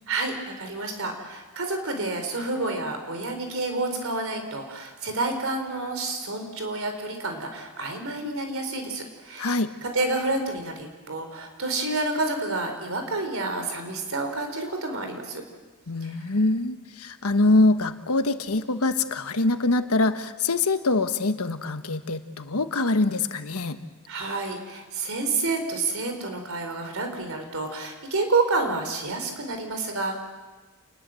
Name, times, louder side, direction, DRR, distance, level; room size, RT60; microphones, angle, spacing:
voice 1, 0.1-15.4 24.1-30.2, right 3 dB, 65° right, 6 dB, 4.3 m, -29 dB
voice 2, 15.9-23.8, left 2 dB, 85° left, 9 dB, 1.4 m, -24 dB
28.0 x 20.0 x 7.8 m, 1.3 s
head